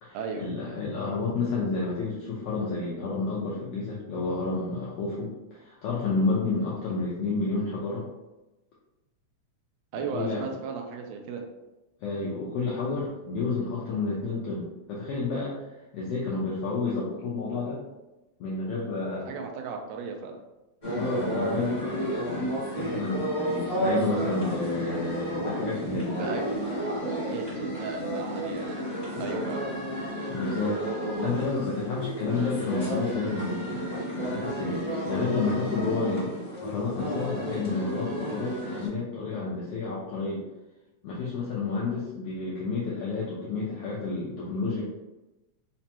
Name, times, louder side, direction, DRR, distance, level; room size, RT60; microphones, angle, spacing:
voice 1, 0.0-8.0 9.9-10.7 12.0-15.5 15.9-17.8 18.4-19.3 21.0-26.4 30.3-30.8 31.1-40.4 41.0-44.8, left 3 dB, 85° left, -6 dB, 1.3 m, -30 dB
voice 2, 9.9-11.4 19.3-20.4 26.2-26.4 27.3-29.6, right 5 dB, 85° right, 2 dB, 1.4 m, -36 dB
sound 1, 20.8-38.9, right 1 dB, 40° left, 0.6 m, -31 dB
4.9 x 2.2 x 2.8 m, 1.0 s
omnidirectional pair, 3.4 m